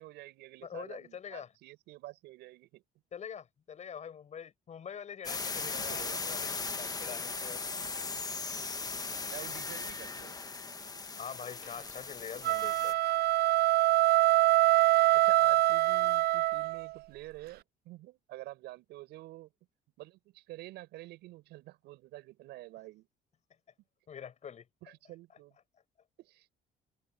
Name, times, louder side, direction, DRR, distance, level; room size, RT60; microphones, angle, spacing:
voice 1, 0.0-2.8 5.5-6.2 9.3-10.4 15.1-19.5 20.0-23.1 24.8-25.6 26.2-26.5, right 18 dB, 85° right, 7.4 m, -48 dB
voice 2, 0.6-1.5 3.1-7.6 11.2-13.0 24.1-24.6, left 7 dB, 45° left, 5.5 m, -44 dB
sound 1, 5.2-12.9, left 4 dB, 20° left, 1.3 m, -38 dB
sound 2, 12.4-16.9, right 17 dB, 70° right, 0.5 m, -25 dB
cardioid pair, 110°, 17 cm